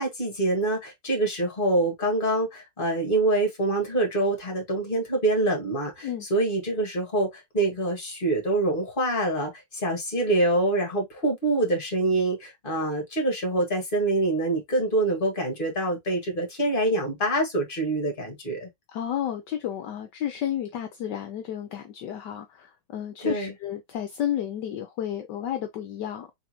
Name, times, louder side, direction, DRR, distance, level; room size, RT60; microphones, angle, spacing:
voice 1, 0.0-18.7 23.2-23.5, right 2 dB, 30° left, 1.9 m, -25 dB
voice 2, 18.9-26.3, left 10 dB, 70° left, 1.2 m, -32 dB
4.2 x 3.6 x 3.0 m
omnidirectional pair, 2.0 m